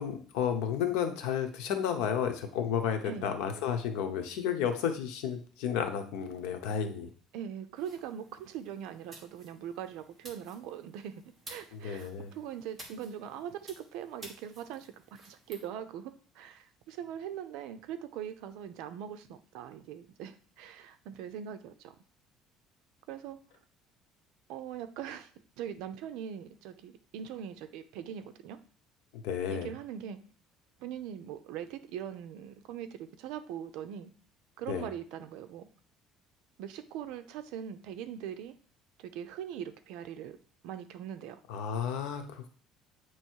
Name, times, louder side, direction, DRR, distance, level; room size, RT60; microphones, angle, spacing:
voice 1, 0.0-7.1 11.7-12.3 29.2-29.7 34.7-34.9 41.5-42.5, left 8 dB, 85° left, 6 dB, 1.0 m, -32 dB
voice 2, 7.3-21.9 23.1-23.4 24.5-25.3 25.6-28.6 29.5-30.2 30.8-34.1 34.6-35.7 36.6-38.6 39.0-40.4 40.6-41.4, right 9 dB, 70° right, 10 dB, 0.6 m, -41 dB
sound 1, 7.8-15.6, right 1 dB, 10° right, 1.4 m, -54 dB
8.5 x 3.1 x 4.6 m, 0.43 s
cardioid pair, 175°, 0 cm